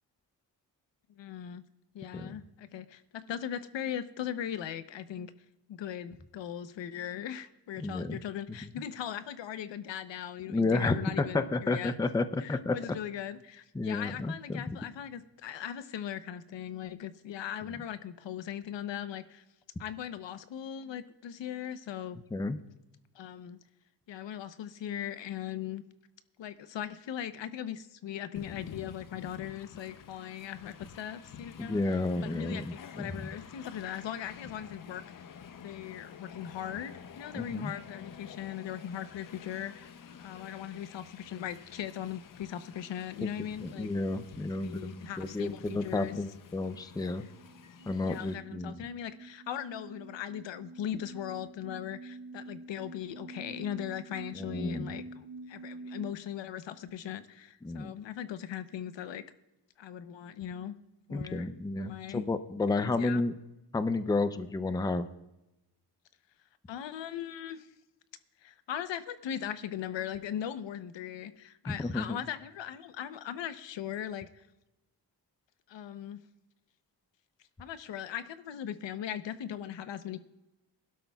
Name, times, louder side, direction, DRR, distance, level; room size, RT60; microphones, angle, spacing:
voice 1, 1.2-1.6 1.9-5.3 5.7-11.9 12.4-19.4 19.8-22.2 23.1-23.6 24.1-25.8 26.4-35.0 35.6-39.9 40.2-43.9 44.5-46.2 48.1-59.2 59.8-60.7 61.1-61.5 61.8-62.2 62.7-63.2 66.7-67.7 68.4-74.5 75.7-76.2 77.6-80.2, left 10 dB, 85° left, 11 dB, 0.9 m, -39 dB
voice 2, 7.8-8.2 10.5-12.8 13.7-14.8 22.3-22.6 31.6-33.2 37.3-37.7 43.6-47.2 47.9-48.8 54.3-54.9 57.6-57.9 61.1-63.3 63.7-65.1 71.7-72.2, left 3 dB, 10° left, 11 dB, 0.5 m, -31 dB
Train, 28.4-48.4, left 7 dB, 50° left, 0.7 m, -50 dB
sound 1, 46.9-56.1, right 3 dB, 50° right, 1.3 m, -47 dB
20.5 x 12.0 x 2.3 m, 0.96 s
wide cardioid pair, 130°, 43 cm